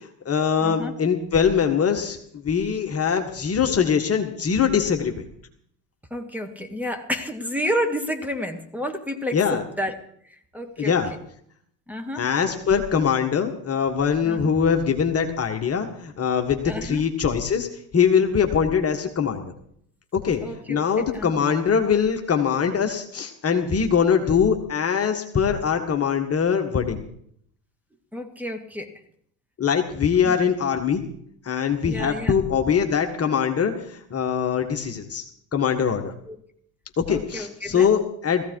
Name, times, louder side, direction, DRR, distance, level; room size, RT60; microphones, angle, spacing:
voice 1, 0.0-2.2 2.4-5.2 9.3-9.6 10.8-11.1 12.2-17.7 17.9-19.5 20.1-20.4 20.7-27.0 29.6-31.0 31.4-35.3 35.5-36.1 37.0-38.4, left 7 dB, 30° left, 4 dB, 1.9 m, -22 dB
voice 2, 0.6-0.9 6.1-10.0 10.3-10.9 11.9-12.3 14.2-14.4 16.6-17.0 20.4-21.3 28.1-28.9 30.2-30.4 31.8-32.3 36.3-36.4 37.1-37.9, equal, 5° right, 5 dB, 2.4 m, -30 dB
18.0 x 15.0 x 4.9 m, 0.67 s
hypercardioid pair, 75°, 49 cm